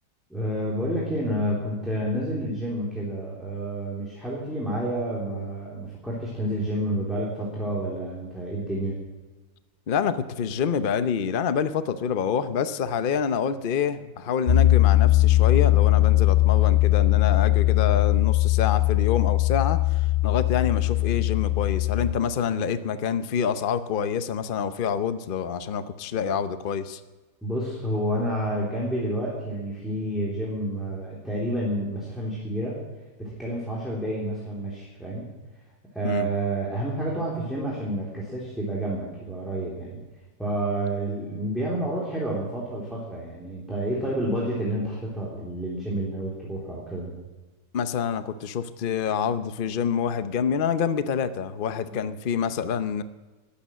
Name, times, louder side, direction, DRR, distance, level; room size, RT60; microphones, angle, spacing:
voice 1, 0.3-8.9 22.5-22.6 27.4-32.8 33.2-35.3 35.9-40.0 40.4-47.1 51.9-52.1, right 1 dB, ahead, -5 dB, 3.3 m, -29 dB
voice 2, 9.9-27.0 36.0-36.3 47.7-53.0, left 7 dB, 80° left, 11 dB, 0.4 m, -27 dB
Piano, 14.5-22.1, left 16 dB, 50° left, 0.8 m, -20 dB
20.5 x 8.7 x 7.5 m, 1.3 s
omnidirectional pair, 2.0 m